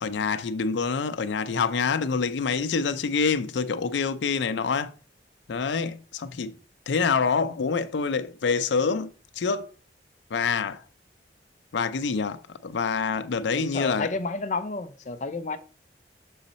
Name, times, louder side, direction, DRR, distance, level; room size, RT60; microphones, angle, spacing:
voice 1, 0.0-4.9 5.5-6.5 6.9-9.7 10.3-10.8 11.7-14.1, left 5 dB, 90° left, 0.5 m, -26 dB
voice 2, 13.5-15.6, left 3 dB, 40° left, 0.5 m, -30 dB
6.3 x 4.1 x 4.0 m
head